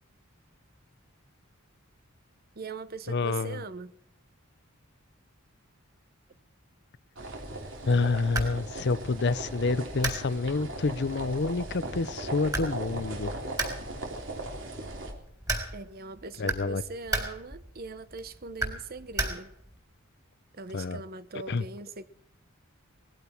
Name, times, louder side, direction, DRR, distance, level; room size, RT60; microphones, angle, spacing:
voice 1, 2.6-3.9 15.7-19.5 20.5-22.0, right 4 dB, 45° right, 0.9 m, -41 dB
voice 2, 3.1-3.6 7.9-13.3 16.4-16.8 20.7-21.0 21.5-21.6, left 3 dB, 55° left, 0.6 m, -28 dB
sound 1, 7.2-15.1, right 2 dB, 60° right, 3.5 m, -38 dB
sound 2, 7.8-19.8, right 2 dB, 15° right, 4.0 m, -37 dB
19.5 x 15.5 x 4.5 m
head